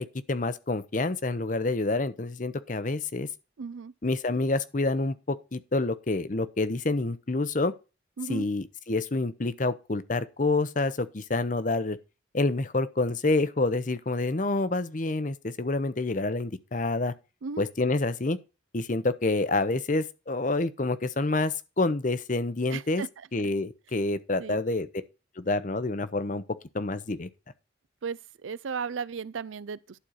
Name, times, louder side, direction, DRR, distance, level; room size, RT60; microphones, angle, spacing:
voice 1, 0.0-3.3 4.0-7.7 8.3-12.0 12.3-17.1 17.6-18.4 18.7-23.0 23.3-24.9 25.4-26.4 26.7-27.3, left 2 dB, 40° left, 0.7 m, -28 dB
voice 2, 3.6-3.9 8.2-8.5 17.4-17.7 22.7-23.3 24.4-24.6 28.0-30.0, right 5 dB, 80° right, 0.5 m, -35 dB
11.5 x 4.5 x 6.4 m
head